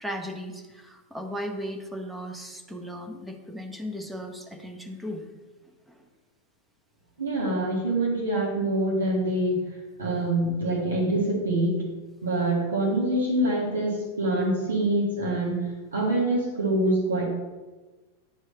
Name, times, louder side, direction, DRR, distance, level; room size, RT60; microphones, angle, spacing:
voice 1, 0.0-5.3 5.9-6.0, equal, 5° right, 3 dB, 0.9 m, -36 dB
voice 2, 7.2-9.6 10.0-11.8 12.2-15.6 15.9-17.2, right 1 dB, 70° right, -5 dB, 1.9 m, -25 dB
8.8 x 4.6 x 2.8 m, 1.2 s
figure-of-eight pair, 90°, 0 cm